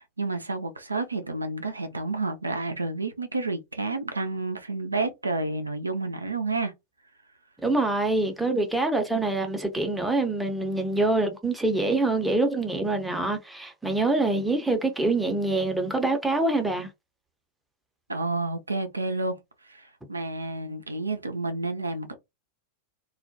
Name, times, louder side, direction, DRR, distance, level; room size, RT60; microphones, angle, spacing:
voice 1, 0.0-6.7 18.1-19.4 19.7-22.1, right 3 dB, 80° right, 0.4 m, -30 dB
voice 2, 7.6-16.9, right 2 dB, 5° right, 0.6 m, -25 dB
2.3 x 2.1 x 2.6 m
figure-of-eight pair, 90°, 0 cm